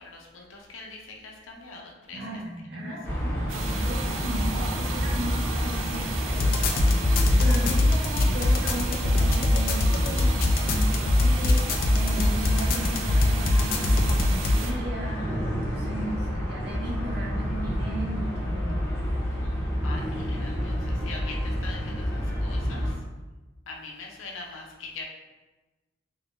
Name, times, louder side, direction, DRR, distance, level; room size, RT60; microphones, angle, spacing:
voice 1, 0.0-2.2 2.7-3.2 19.8-22.9 23.7-25.0, left 3 dB, 90° left, 0 dB, 0.6 m, -42 dB
voice 2, 2.1-18.8, right 1 dB, 55° right, -1 dB, 0.7 m, -36 dB
sound 1, 3.0-22.9, equal, 10° left, 0.8 m, -29 dB
sound 2, 3.5-14.7, right 6 dB, 85° right, 0.4 m, -37 dB
sound 3, 6.3-14.6, left 2 dB, 45° left, 0.3 m, -23 dB
2.7 x 2.5 x 3.6 m, 1.2 s
head